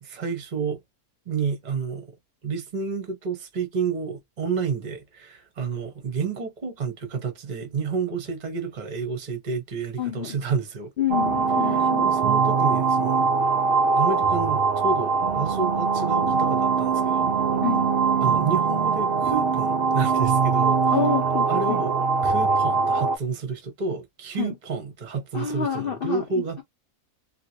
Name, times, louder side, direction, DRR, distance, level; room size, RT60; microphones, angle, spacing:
voice 1, 0.0-0.8 1.3-2.1 2.4-10.9 11.6-13.3 13.9-17.3 18.2-21.0 21.5-21.9 22.2-26.6, right 5 dB, 35° right, 0.8 m, -30 dB
voice 2, 10.0-10.4 11.0-12.1 17.6-17.9 20.9-21.8 24.4-24.5 25.3-26.6, left 8 dB, 50° left, 0.7 m, -28 dB
sound 1, 11.1-23.2, right 5 dB, 65° right, 0.6 m, -22 dB
2.9 x 2.7 x 2.7 m
omnidirectional pair, 1.5 m